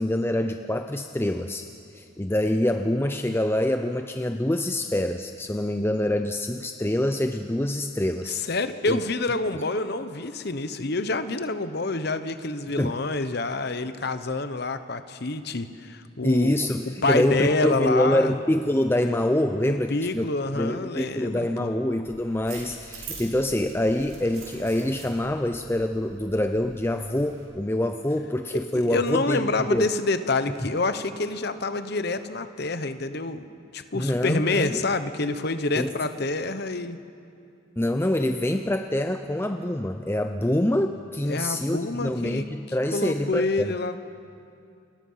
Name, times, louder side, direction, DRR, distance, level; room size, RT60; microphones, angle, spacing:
voice 1, 0.0-1.7 1.9-8.4 8.9-9.0 12.8-13.0 16.2-29.9 33.9-34.8 35.8-35.9 37.8-43.8, left 1 dB, 10° left, 7 dB, 0.5 m, -25 dB
voice 2, 8.3-16.5 17.0-18.3 19.6-21.7 28.5-33.5 33.7-37.0 41.2-42.4 42.9-44.0, left 3 dB, 50° left, 10 dB, 1.0 m, -27 dB
sound 1, 22.0-27.4, right 4 dB, 80° right, 5.7 m, -44 dB
28.5 x 21.0 x 5.7 m, 2.5 s
head